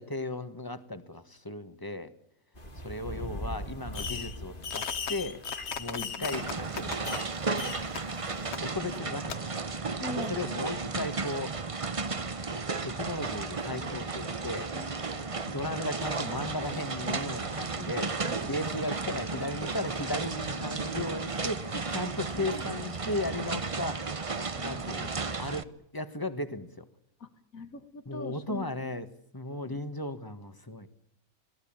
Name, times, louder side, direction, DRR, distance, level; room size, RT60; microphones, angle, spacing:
voice 1, 0.0-2.1 2.7-5.4 5.8-7.2 8.6-9.5 10.3-11.6 12.8-14.7 15.4-24.3 24.6-25.1 25.4-26.9 28.0-29.1 29.3-30.9, left 2 dB, 15° left, 10 dB, 1.6 m, -36 dB
sound 1, 2.5-8.5, equal, 40° left, 2.8 m, -43 dB
Fireworks, 3.9-4.4 4.6-7.3 7.6-8.0 8.5-8.6 9.3-9.4, left 6 dB, 55° left, 1.3 m, -36 dB
voice 2, 5.9-6.3 8.9-9.0 10.0-10.4 14.7-15.3 18.3-18.9 22.4-22.7 24.5-25.1 27.2-28.6, left 2 dB, 85° left, 10 dB, 2.3 m, -43 dB
sound 2, 6.3-25.6, right 4 dB, 30° right, 0.9 m, -34 dB
26.5 x 17.5 x 8.9 m, 0.79 s
omnidirectional pair, 1.4 m